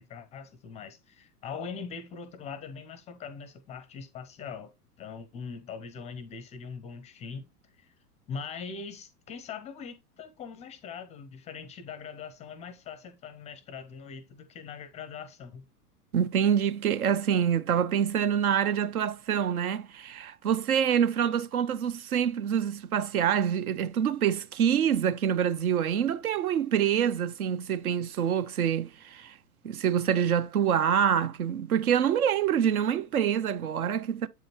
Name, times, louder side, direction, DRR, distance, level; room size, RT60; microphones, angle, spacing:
voice 1, 0.0-4.7 5.0-7.9 8.3-15.6, left 6 dB, 15° left, 0.5 m, -42 dB
voice 2, 16.1-29.3 29.6-34.3, right 8 dB, 65° right, 0.6 m, -26 dB
7.7 x 5.0 x 2.9 m
figure-of-eight pair, 95°, 47 cm